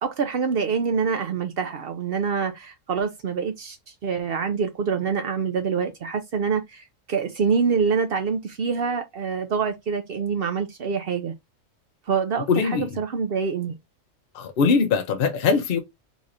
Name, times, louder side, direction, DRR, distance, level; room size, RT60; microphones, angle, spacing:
voice 1, 0.0-3.8 4.0-11.3 12.1-13.8, right 6 dB, 60° right, 0.6 m, -26 dB
voice 2, 12.5-12.9 14.3-15.8, left 5 dB, 50° left, 0.8 m, -21 dB
4.0 x 3.0 x 2.5 m
omnidirectional pair, 1.4 m